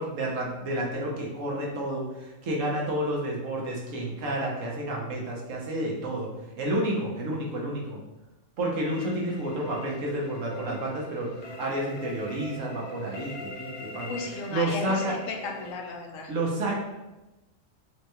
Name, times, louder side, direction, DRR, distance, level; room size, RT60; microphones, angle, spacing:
voice 1, 0.0-6.3 6.6-8.0 8.6-15.2 16.3-16.8, right 1 dB, 75° right, -2 dB, 1.3 m, -30 dB
sound 1, 8.9-15.7, left 1 dB, 60° left, 0.7 m, -42 dB
voice 2, 14.0-16.3, left 4 dB, 80° left, 2 dB, 1.0 m, -35 dB
5.7 x 2.3 x 3.0 m, 1.0 s
omnidirectional pair, 1.3 m